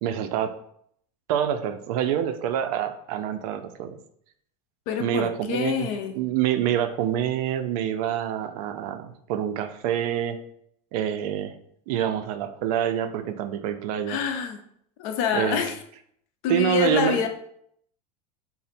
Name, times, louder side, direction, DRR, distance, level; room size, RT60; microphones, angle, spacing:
voice 1, 0.0-0.6 1.3-4.0 5.0-5.9 6.2-10.4 10.9-11.6 11.9-14.2 15.3-15.6 16.5-17.2, right 10 dB, 65° right, 10 dB, 0.4 m, -26 dB
voice 2, 4.9-6.2 14.1-14.6 15.0-15.8 16.4-17.3, left 6 dB, 60° left, 6 dB, 0.5 m, -26 dB
3.9 x 2.1 x 4.2 m, 0.69 s
supercardioid pair, 150°, 21 cm